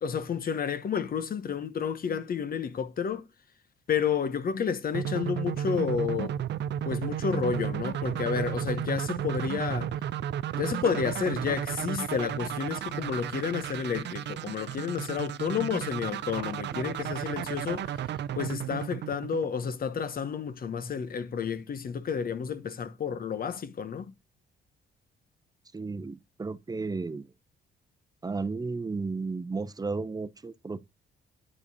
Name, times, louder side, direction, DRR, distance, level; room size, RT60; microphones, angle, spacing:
voice 1, 0.0-3.3 3.9-6.3 6.8-10.0 10.5-18.1 18.4-24.1, left 6 dB, 45° left, 1.1 m, -31 dB
sound 1, 4.9-19.9, right 10 dB, 60° right, 0.5 m, -33 dB
voice 2, 25.7-27.3 28.2-30.8, right 4 dB, 20° right, 0.8 m, -33 dB
10.0 x 4.9 x 4.1 m
cardioid pair, 90°, 20 cm